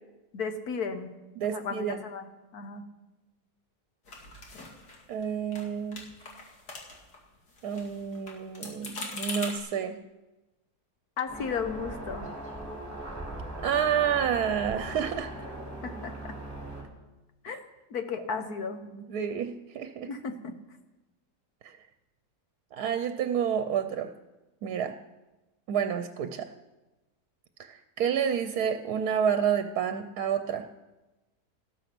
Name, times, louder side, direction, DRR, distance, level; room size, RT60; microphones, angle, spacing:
voice 1, 0.3-1.1 1.5-2.9 11.2-12.3 15.8-16.3 17.4-17.6 17.9-18.8 20.1-20.5, left 5 dB, 70° left, 8 dB, 1.7 m, -34 dB
voice 2, 1.4-2.0 5.1-6.1 7.6-10.0 13.6-15.3 17.5-17.6 18.9-20.1 21.6-21.7 22.7-24.1 24.6-24.9 25.7-26.5 27.6-30.7, right 8 dB, 70° right, 9 dB, 1.2 m, -29 dB
sound 1, 4.1-5.2 5.5-5.7 5.9-7.2 7.5-9.6, left 2 dB, 85° left, 2.9 m, -41 dB
sound 2, 11.3-16.8, right 1 dB, 10° right, 2.9 m, -39 dB
13.5 x 13.0 x 6.0 m, 1.1 s
omnidirectional pair, 1.7 m